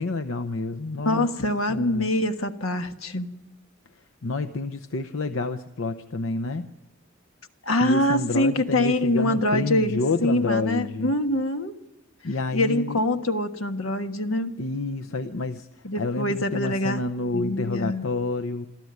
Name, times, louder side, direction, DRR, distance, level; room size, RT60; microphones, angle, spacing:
voice 1, 0.0-1.3 1.7-2.1 4.2-6.7 7.8-11.1 12.2-13.0 14.6-15.7 16.0-18.7, left 3 dB, 70° left, 9 dB, 0.8 m, -29 dB
voice 2, 1.0-3.3 7.6-11.7 12.5-14.5 15.8-17.0 17.3-18.0, left 1 dB, 85° left, 7 dB, 1.4 m, -24 dB
27.5 x 13.5 x 9.5 m, 1.0 s
head